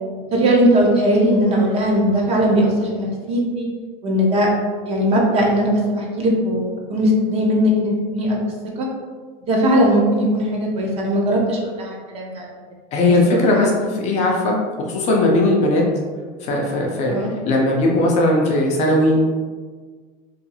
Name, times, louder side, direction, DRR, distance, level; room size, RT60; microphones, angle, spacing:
voice 1, 0.3-3.7 4.0-4.5 4.9-8.4 8.8-8.9 9.5-12.5 13.3-13.7 17.1-17.3, equal, 30° right, -2 dB, 0.5 m, -19 dB
voice 2, 12.9-15.9 16.4-17.2 17.5-19.4, left 1 dB, 35° left, -1 dB, 0.4 m, -18 dB
2.7 x 2.3 x 2.6 m, 1.5 s
cardioid pair, 160°, 20 cm